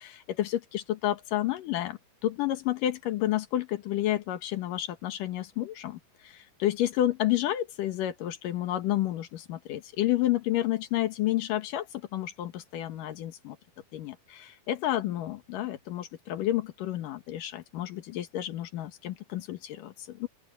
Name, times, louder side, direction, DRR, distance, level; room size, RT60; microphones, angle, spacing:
voice 1, 0.0-13.6 13.9-20.3, left 13 dB, 70° left, 2.8 m, -30 dB
open air
omnidirectional pair, 4.3 m